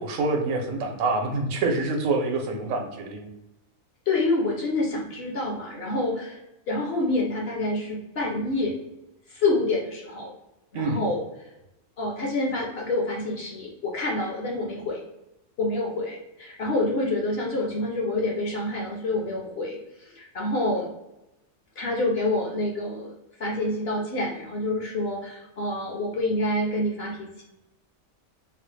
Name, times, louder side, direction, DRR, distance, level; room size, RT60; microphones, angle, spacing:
voice 1, 0.0-3.3 10.7-11.0, right 3 dB, 75° right, 3 dB, 1.0 m, -26 dB
voice 2, 4.1-6.4 6.7-8.8 9.3-10.3 10.7-11.2 12.0-15.0 15.6-19.8 20.0-20.9 21.8-23.1 23.4-27.4, left 2 dB, 55° left, -1 dB, 0.7 m, -27 dB
3.8 x 2.0 x 3.1 m, 0.93 s
omnidirectional pair, 1.5 m